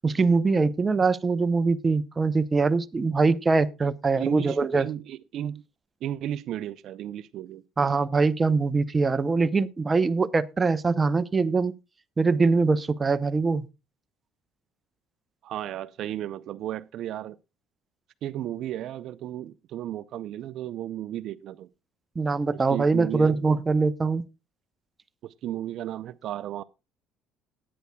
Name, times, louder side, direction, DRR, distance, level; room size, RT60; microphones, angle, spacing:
voice 1, 0.0-4.9 7.8-11.7 12.2-13.6 22.2-24.2, right 4 dB, 20° right, 0.7 m, -23 dB
voice 2, 4.1-5.6 6.0-7.6 15.4-17.4 18.2-21.7 22.7-23.4 25.2-26.6, right 11 dB, 60° right, 0.5 m, -34 dB
18.5 x 9.5 x 2.2 m
cardioid pair, 115°, 0 cm